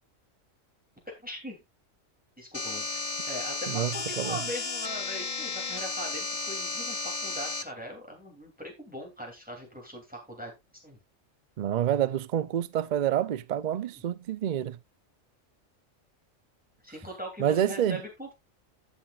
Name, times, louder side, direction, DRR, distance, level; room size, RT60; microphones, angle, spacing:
voice 1, 1.1-1.6 2.4-10.5 10.8-11.0 16.8-18.3, equal, 5° right, 2.7 m, -40 dB
sound 1, 2.5-7.6, left 3 dB, 30° left, 0.8 m, -33 dB
voice 2, 3.7-4.4 11.6-14.8 17.4-18.0, right 10 dB, 70° right, 0.4 m, -28 dB
15.5 x 5.7 x 2.4 m
omnidirectional pair, 1.4 m